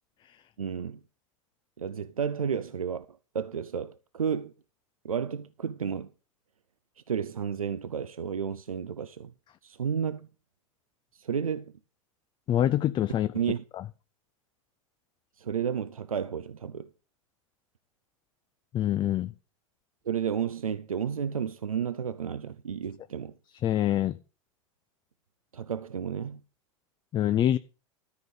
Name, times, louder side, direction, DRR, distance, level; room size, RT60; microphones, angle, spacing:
voice 1, 0.6-1.0 1.8-4.5 5.0-6.1 7.1-9.3 9.6-10.3 11.1-11.7 13.3-13.6 15.4-16.9 20.1-23.3 25.5-26.4, right 7 dB, 85° right, 0.6 m, -32 dB
voice 2, 12.5-13.3 13.7-13.8 18.7-19.3 23.6-24.2 27.1-27.6, left 11 dB, 25° left, 0.5 m, -25 dB
13.0 x 5.3 x 7.8 m
figure-of-eight pair, 90°, 18 cm